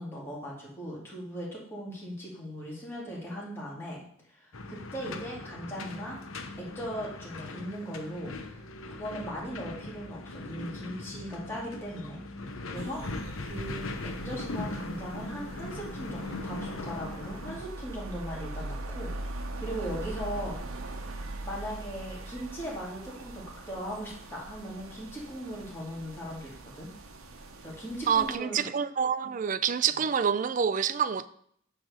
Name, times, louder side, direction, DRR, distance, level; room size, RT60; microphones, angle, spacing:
voice 1, 0.0-6.2 6.6-8.6 8.9-12.2 12.7-13.0 13.4-13.9 14.2-20.6 21.4-26.9 27.6-28.7, equal, 10° left, 2.3 m, -39 dB
sound 1, 4.5-17.6, left 2 dB, 80° left, 0.8 m, -39 dB
sound 2, 12.7-28.4, right 2 dB, 85° right, 0.9 m, -41 dB
voice 2, 28.1-31.3, right 7 dB, 40° right, 0.3 m, -27 dB
9.5 x 3.4 x 6.5 m
head